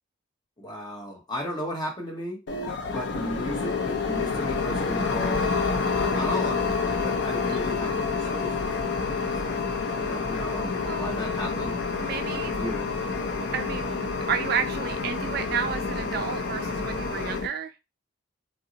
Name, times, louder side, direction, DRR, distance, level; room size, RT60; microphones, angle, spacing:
voice 1, 0.6-2.4 2.9-5.5 5.9-11.8 12.4-12.9, left 1 dB, 20° left, -1 dB, 0.9 m, -35 dB
sound 1, 2.5-17.5, left 4 dB, 60° left, 0.5 m, -28 dB
voice 2, 12.0-12.5 13.5-13.9 14.3-17.7, right 7 dB, 50° right, 9 dB, 0.3 m, -31 dB
2.6 x 2.0 x 3.8 m, 0.24 s
head